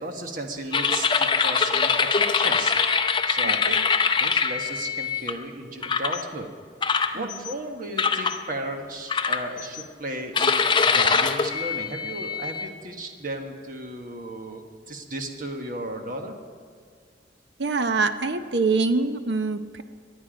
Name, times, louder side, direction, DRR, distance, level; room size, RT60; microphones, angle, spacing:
voice 1, 0.0-2.7 3.3-3.8 4.2-6.5 7.1-14.6 14.9-16.3, right 1 dB, 45° right, 4 dB, 1.4 m, -35 dB
sound 1, 0.7-5.3 5.8-6.2 6.8-7.5 8.0-8.4 9.1-9.8 10.3-12.7, left 5 dB, 25° left, 0.6 m, -23 dB
voice 2, 17.6-19.8, right 3 dB, 65° right, 9 dB, 0.8 m, -25 dB
23.0 x 9.6 x 5.2 m, 2.1 s
head